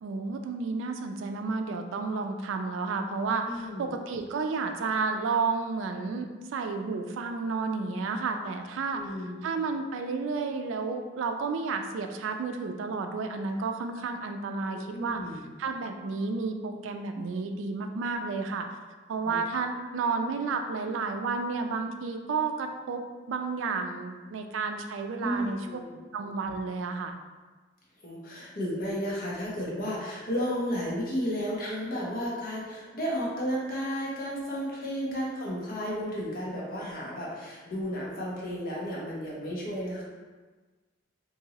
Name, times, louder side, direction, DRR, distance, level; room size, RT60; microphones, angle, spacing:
voice 1, 0.0-9.0 9.4-15.2 15.6-18.7 19.1-25.6 26.1-27.2 35.1-35.2, right 4 dB, 90° right, 6 dB, 0.3 m, -31 dB
voice 2, 3.4-3.9 8.9-9.4 14.7-15.4 19.2-19.4 25.2-26.0 28.0-40.0, equal, 50° left, -5 dB, 0.8 m, -33 dB
2.8 x 2.6 x 2.8 m, 1.3 s
head